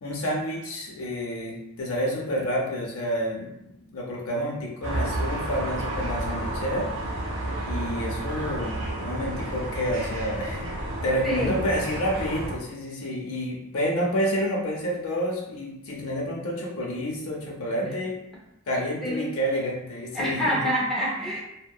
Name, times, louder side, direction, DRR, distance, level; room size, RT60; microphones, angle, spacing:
voice 1, 0.0-6.9 7.7-10.7 11.0-18.1 18.7-20.7, equal, 65° left, -1 dB, 0.6 m, -29 dB
sound 1, 4.8-12.5, right 1 dB, 60° right, 0.6 m, -31 dB
voice 2, 11.2-11.6 17.8-17.9 19.0-19.3 20.1-21.4, equal, ahead, -6 dB, 0.5 m, -27 dB
2.6 x 2.1 x 2.2 m, 0.82 s
head